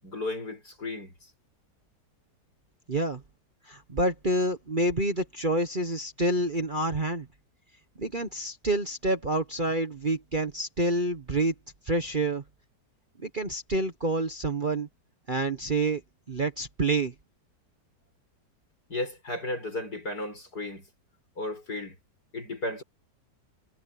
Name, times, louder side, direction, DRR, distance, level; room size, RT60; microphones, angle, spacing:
voice 1, 0.0-1.1 18.9-20.9 21.4-22.0 22.3-22.8, left 2 dB, 60° left, 8.0 m, -34 dB
voice 2, 2.9-3.2 3.7-7.3 8.0-11.5 11.8-12.4 13.2-14.9 15.3-16.0 16.3-17.1, right 2 dB, 30° right, 1.3 m, -28 dB
omnidirectional pair, 1.9 m